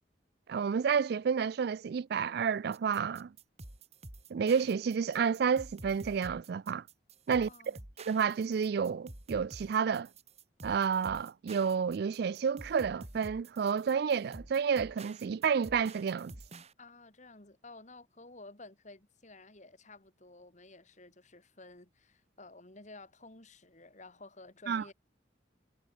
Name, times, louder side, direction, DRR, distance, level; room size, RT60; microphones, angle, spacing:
voice 1, 0.5-3.3 4.3-6.8 7.3-7.5 8.1-10.1 10.6-16.4 24.7-24.8, right 6 dB, 55° right, 0.3 m, -30 dB
sound 1, 2.7-16.7, right 2 dB, 35° right, 2.9 m, -49 dB
voice 2, 7.3-7.8 16.8-24.9, left 2 dB, 40° left, 3.2 m, -53 dB
head